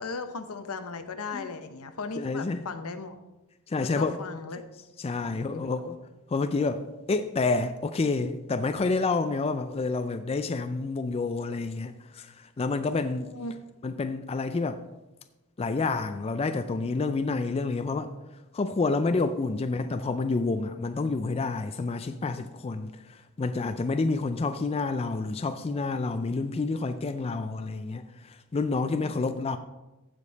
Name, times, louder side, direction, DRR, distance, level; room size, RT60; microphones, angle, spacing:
voice 1, 0.0-3.2 3.8-4.6 5.2-5.7 13.3-13.5 29.0-29.1, left 4 dB, 75° left, 0.8 m, -37 dB
voice 2, 2.2-2.6 3.7-4.2 5.0-6.0 6.3-13.3 13.8-14.8 15.6-18.1 18.5-29.6, left 3 dB, 25° left, 0.3 m, -29 dB
15.0 x 5.2 x 4.0 m
head